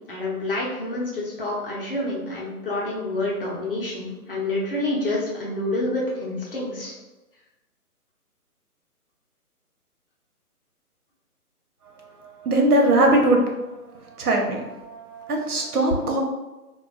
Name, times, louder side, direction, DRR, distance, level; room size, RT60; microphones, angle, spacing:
voice 1, 0.1-6.9, left 2 dB, 40° left, -4 dB, 0.6 m, -28 dB
voice 2, 12.4-13.4 14.2-16.2, right 1 dB, 75° right, 1 dB, 0.8 m, -20 dB
2.4 x 2.2 x 2.4 m, 1.1 s
figure-of-eight pair, 145°, 46 cm